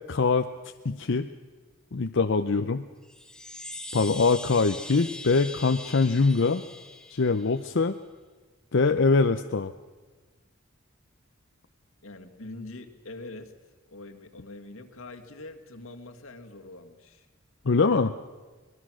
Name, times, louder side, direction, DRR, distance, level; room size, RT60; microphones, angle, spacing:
voice 1, 0.1-0.5 0.8-1.3 1.9-2.9 3.9-6.6 7.1-7.9 8.7-9.7 17.7-18.1, left 4 dB, 60° left, 7 dB, 0.7 m, -23 dB
Chime, 3.0-7.7, left 2 dB, 5° left, 1.0 m, -42 dB
voice 2, 12.0-13.5 13.9-17.3, left 2 dB, 85° left, 4 dB, 2.0 m, -44 dB
25.0 x 20.0 x 6.3 m, 1.3 s
head